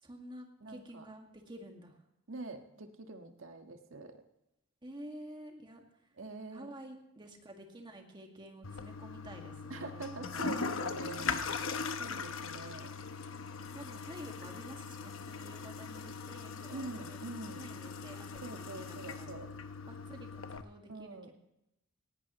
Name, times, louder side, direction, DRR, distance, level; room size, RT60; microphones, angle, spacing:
voice 1, 0.0-2.0 4.8-5.9 6.5-10.0 10.3-10.5 11.0-11.8 13.6-17.2 17.5-19.4 19.9-21.3, right 1 dB, 25° right, 2 dB, 2.0 m, -50 dB
voice 2, 0.6-1.0 2.3-4.2 6.2-6.7 9.7-11.3 12.0-12.9 16.7-17.6 18.4-19.5 20.9-21.3, right 3 dB, 80° right, 5 dB, 1.6 m, -45 dB
Toilet flush, 8.6-20.6, left 5 dB, 80° left, 0.9 m, -40 dB
18.5 x 17.0 x 3.1 m, 0.88 s
head